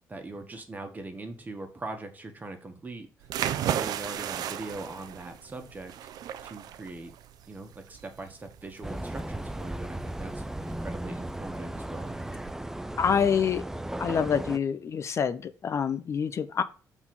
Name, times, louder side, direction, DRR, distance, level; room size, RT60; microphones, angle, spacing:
voice 1, 0.1-3.1 3.6-5.9 6.4-7.1 7.5-12.2, right 2 dB, 25° right, 6 dB, 1.5 m, -41 dB
sound 1, 3.2-12.5, right 10 dB, 75° right, 0.5 m, -36 dB
sound 2, 8.8-14.6, right 1 dB, 5° right, 0.4 m, -36 dB
voice 2, 13.0-13.6 14.0-16.6, left 7 dB, 45° left, 10 dB, 0.7 m, -26 dB
6.0 x 4.0 x 6.0 m, 0.37 s
cardioid pair, 95°, 7 cm